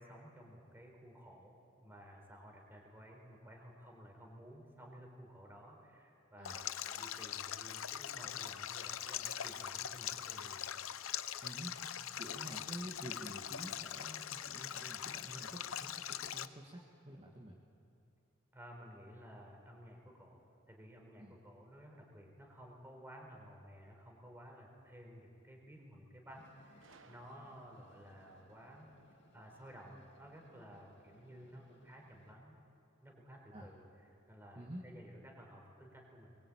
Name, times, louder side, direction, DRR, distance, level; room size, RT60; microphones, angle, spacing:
voice 1, 0.0-10.7 18.5-28.9 29.3-32.6 33.0-33.8 34.3-36.4, equal, 10° right, 0 dB, 4.2 m, -55 dB
Stream, 6.4-16.5, left 10 dB, 75° left, 0.7 m, -42 dB
voice 2, 11.4-11.7 12.2-17.6 21.2-21.4 33.5-33.7 34.6-34.8, right 1 dB, 30° right, -3 dB, 1.8 m, -49 dB
Train, 26.3-32.3, left 1 dB, 55° left, 2.6 m, -67 dB
Gunshot gunfire, 26.8-28.0, right 4 dB, 65° right, 1.2 m, -63 dB
23.0 x 22.5 x 8.7 m, 2.6 s
head